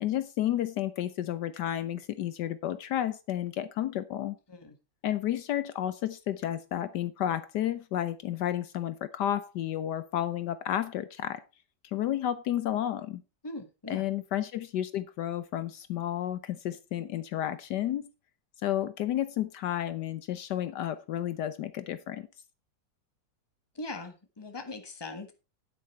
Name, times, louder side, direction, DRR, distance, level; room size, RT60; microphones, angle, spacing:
voice 1, 0.0-4.4 5.0-11.4 11.8-13.2 13.9-18.1 18.6-22.3, left 11 dB, 75° left, 1.2 m, -31 dB
voice 2, 13.4-14.1 23.7-25.3, left 2 dB, 15° left, 1.3 m, -40 dB
9.6 x 8.8 x 4.3 m
omnidirectional pair, 2.0 m